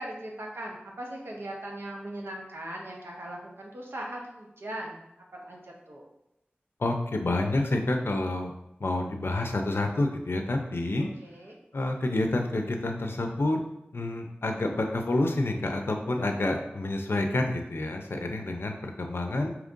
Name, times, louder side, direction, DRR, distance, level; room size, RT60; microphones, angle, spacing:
voice 1, 0.0-5.0 5.3-6.1 11.2-11.6, right 1 dB, 75° right, -1 dB, 0.8 m, -39 dB
voice 2, 6.8-8.5 8.8-11.1 11.7-13.6 13.9-19.5, left 2 dB, 75° left, 4 dB, 0.5 m, -28 dB
5.1 x 2.9 x 2.5 m, 0.88 s
wide cardioid pair, 55°, 4 cm